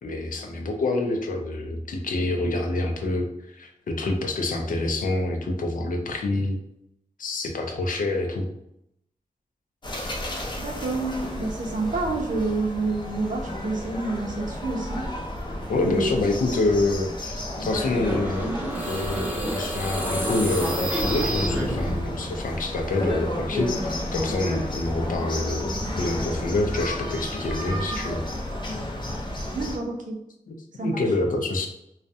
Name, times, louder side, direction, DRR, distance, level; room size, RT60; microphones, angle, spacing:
voice 1, 0.0-6.6 7.2-8.5 15.7-18.5 18.9-25.7 26.0-28.2 30.5-30.6 30.8-31.7, left 2 dB, 85° left, 3 dB, 0.5 m, -27 dB
sound 1, 9.8-29.8, left 1 dB, 35° left, 0.5 m, -32 dB
voice 2, 10.6-15.1 15.8-16.1 17.6-17.7 29.5-30.2 30.8-30.9, right 3 dB, 75° right, 1 dB, 0.6 m, -28 dB
sound 2, 18.0-22.2, right 1 dB, 10° right, 0.6 m, -29 dB
2.3 x 2.1 x 2.6 m, 0.81 s
wide cardioid pair, 90°, 14 cm